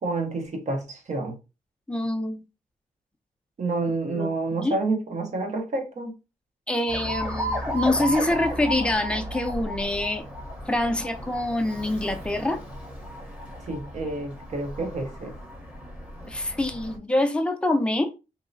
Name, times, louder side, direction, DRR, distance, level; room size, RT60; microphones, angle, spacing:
voice 1, 0.0-1.4 3.6-6.1 13.7-15.3, right 3 dB, 50° right, 0.9 m, -29 dB
voice 2, 1.9-2.4 4.1-4.3 4.6-4.8 6.7-10.2 10.7-12.6 16.3-18.1, left 1 dB, 5° left, 0.5 m, -25 dB
Alarm, 6.9-17.0, equal, 10° right, 0.9 m, -34 dB
3.0 x 2.8 x 2.7 m
cardioid pair, 110°, 15 cm